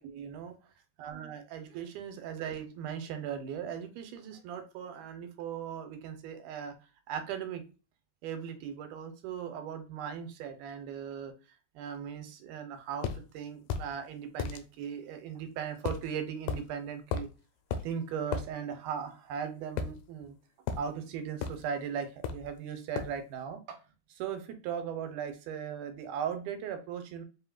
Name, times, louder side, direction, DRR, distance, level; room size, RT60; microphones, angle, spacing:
voice 1, 0.0-0.6 1.0-6.8 7.1-7.6 8.2-11.3 11.8-17.3 17.8-20.4 20.8-23.8 24.1-27.2, right 8 dB, 90° right, 8 dB, 2.2 m, -38 dB
sound 1, 13.0-13.2 13.7-13.9 14.4-14.6 15.9-16.1 16.5-16.6 17.1-17.3 17.7-17.9 18.3-18.5 19.8-20.3 20.7-20.9 21.4-21.6 22.2-22.5 23.0-23.2, left 6 dB, 80° left, 1.9 m, -34 dB
5.5 x 2.8 x 2.3 m, 0.32 s
omnidirectional pair, 3.7 m